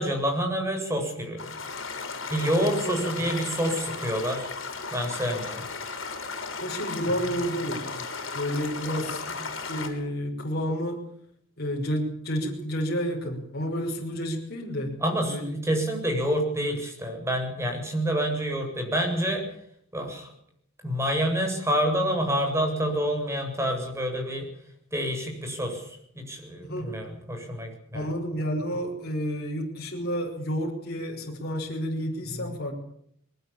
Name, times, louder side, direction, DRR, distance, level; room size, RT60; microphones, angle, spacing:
voice 1, 0.0-1.5 2.3-4.5 4.9-5.7 6.9-7.1 8.8-9.2 15.0-19.4 19.9-20.3 20.8-24.5 24.9-28.1, equal, 15° right, 3 dB, 7.9 m, -28 dB
sound 1, 1.4-9.9, left 4 dB, 65° left, 6.5 m, -35 dB
voice 2, 6.6-9.2 9.7-11.0 11.6-15.0 15.3-15.4 26.6-26.9 27.9-32.7, equal, 50° left, -1 dB, 5.8 m, -30 dB
22.5 x 20.0 x 8.8 m, 0.69 s
head